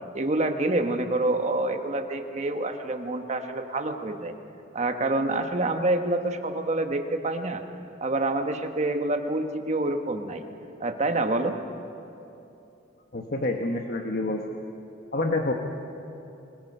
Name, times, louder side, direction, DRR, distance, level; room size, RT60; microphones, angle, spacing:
voice 1, 0.1-4.3 4.7-7.6 8.0-10.4 10.8-11.6, right 2 dB, 35° right, 6 dB, 1.2 m, -27 dB
voice 2, 13.1-14.4 15.1-15.5, left 2 dB, 50° left, 3 dB, 1.1 m, -27 dB
25.0 x 20.5 x 5.5 m, 2.8 s
head